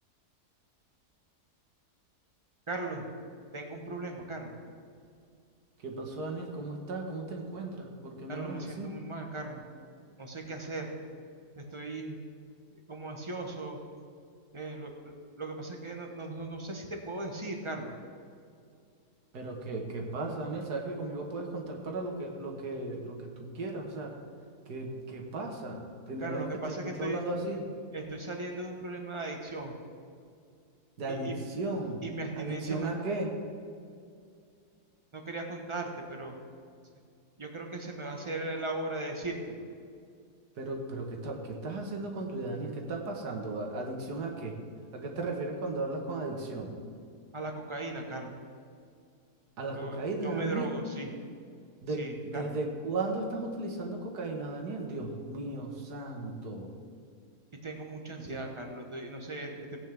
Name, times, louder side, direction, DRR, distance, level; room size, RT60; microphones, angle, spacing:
voice 1, 2.7-3.0 3.5-4.6 8.3-9.6 10.2-10.9 11.5-12.2 12.9-13.8 14.5-18.0 26.2-27.2 27.9-29.7 31.1-31.4 32.0-32.9 35.1-36.3 37.4-39.6 47.3-48.4 49.7-51.1 52.0-52.6 57.6-59.8, right 2 dB, 20° right, 2 dB, 1.1 m, -38 dB
voice 2, 5.8-8.9 19.3-24.2 24.7-27.6 31.0-32.0 32.4-33.3 40.6-44.6 44.9-46.8 49.6-50.8 51.8-56.7 58.2-58.4, right 2 dB, 80° right, 1 dB, 2.0 m, -36 dB
17.5 x 8.6 x 3.5 m, 2.3 s
omnidirectional pair, 1.7 m